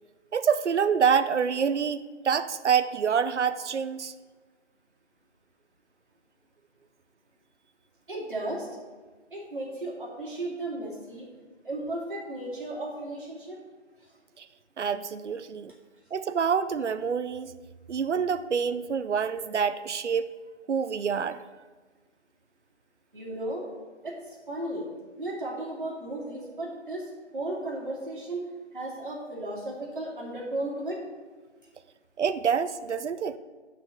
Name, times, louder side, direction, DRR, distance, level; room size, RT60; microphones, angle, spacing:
voice 1, 0.3-4.1 14.4-14.5 14.8-15.7 16.1-17.6 17.9-20.3 20.7-21.4 32.2-33.4, right 7 dB, 70° right, 13 dB, 0.6 m, -27 dB
voice 2, 8.1-8.7 9.3-11.3 11.6-13.6 23.1-23.7 24.0-24.9 25.2-28.5 28.7-31.0, right 1 dB, 45° right, -4 dB, 2.6 m, -35 dB
7.9 x 6.0 x 6.0 m, 1.4 s
figure-of-eight pair, 180°, 36 cm